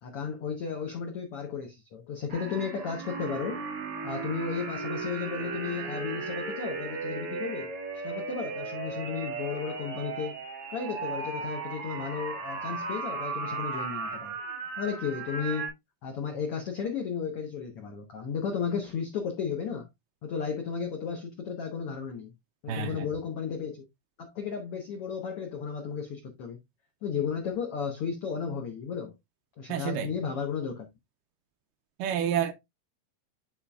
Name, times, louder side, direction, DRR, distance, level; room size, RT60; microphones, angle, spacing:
voice 1, 0.0-3.6 4.0-10.3 10.7-14.4 14.8-15.7 16.0-19.9 20.2-22.3 22.6-23.9 24.2-26.6 27.0-29.1 29.6-30.9, left 6 dB, 80° left, 1.2 m, -34 dB
sound 1, 2.3-15.7, right 4 dB, 55° right, 1.8 m, -36 dB
voice 2, 22.7-23.1 29.7-30.1 32.0-32.5, right 8 dB, 80° right, 2.1 m, -29 dB
11.5 x 4.2 x 2.3 m
omnidirectional pair, 4.1 m